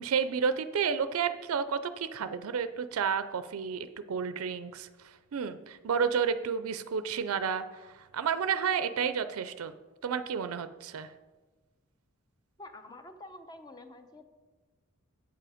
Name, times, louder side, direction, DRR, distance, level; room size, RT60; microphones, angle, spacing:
voice 1, 0.0-9.7 10.0-11.1, right 6 dB, 80° right, 12 dB, 0.4 m, -31 dB
voice 2, 12.6-14.2, left 2 dB, 20° left, 7 dB, 0.7 m, -48 dB
8.1 x 7.6 x 4.9 m, 1.3 s
head